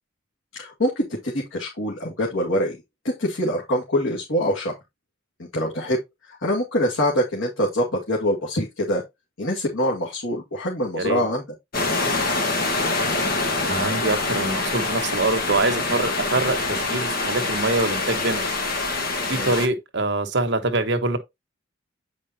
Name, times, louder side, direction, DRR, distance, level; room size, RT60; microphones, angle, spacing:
voice 1, 0.5-2.8 3.0-4.8 5.5-6.0 6.3-9.0 9.4-11.4 19.3-19.5, equal, 90° left, 2.2 m, -24 dB
sound 1, 11.7-19.7, left 3 dB, 50° left, 1.5 m, -25 dB
voice 2, 13.7-18.5 19.3-21.2, right 2 dB, 60° right, 1.2 m, -24 dB
8.6 x 5.2 x 2.8 m
head